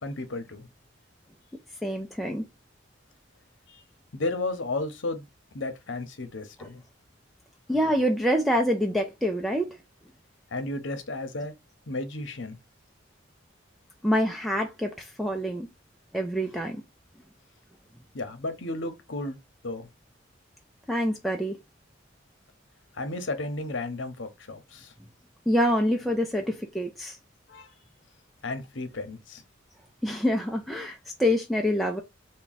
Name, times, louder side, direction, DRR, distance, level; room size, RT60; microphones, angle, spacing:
voice 1, 0.0-0.7 3.7-3.8 4.1-5.2 5.5-6.8 10.5-11.5 11.9-12.6 18.1-19.4 19.6-19.9 22.9-24.9 27.5-27.7 28.4-29.4, left 2 dB, 70° left, 0.8 m, -33 dB
voice 2, 1.8-2.4 7.7-9.8 14.0-15.7 16.1-16.8 20.9-21.6 25.5-27.2 30.0-32.0, equal, ahead, 0.3 m, -26 dB
3.5 x 2.2 x 3.9 m
head